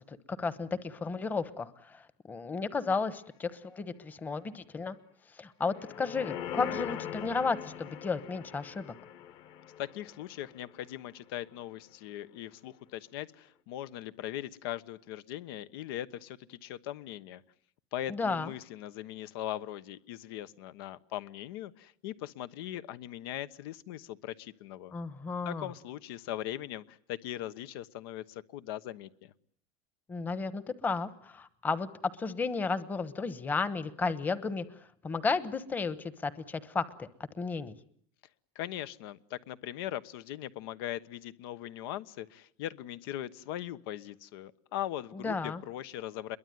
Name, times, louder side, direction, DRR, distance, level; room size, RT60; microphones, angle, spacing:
voice 1, 0.1-4.9 5.3-8.9 18.1-18.5 24.9-25.7 30.1-31.9 32.2-34.6 35.0-37.1 37.3-37.7 45.1-45.6, left 4 dB, 15° left, 15 dB, 1.1 m, -33 dB
sound 1, 5.6-11.0 11.4-11.5, left 9 dB, 40° left, 1.4 m, -41 dB
voice 2, 9.8-17.4 17.9-24.9 25.4-29.3 38.5-46.4, left 12 dB, 85° left, 15 dB, 1.2 m, -40 dB
27.5 x 22.5 x 9.3 m, 0.65 s
cardioid pair, 170°, 12 cm